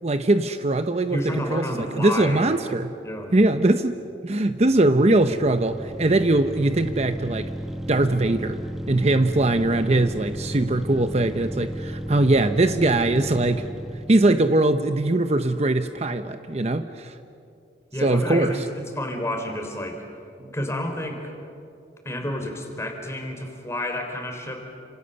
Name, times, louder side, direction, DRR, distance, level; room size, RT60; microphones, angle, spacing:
voice 1, 0.0-2.9 3.3-4.0 4.2-7.5 7.9-8.6 8.9-13.7 14.1-17.1 18.0-18.6, right 2 dB, 40° right, 9 dB, 0.8 m, -21 dB
voice 2, 1.1-2.5 3.0-3.4 17.9-20.0 20.5-21.3 22.0-24.6, left 1 dB, 15° left, 3 dB, 3.8 m, -30 dB
sound 1, 4.6-14.4, equal, ahead, 1.1 m, -34 dB
29.5 x 27.0 x 6.9 m, 2.6 s
head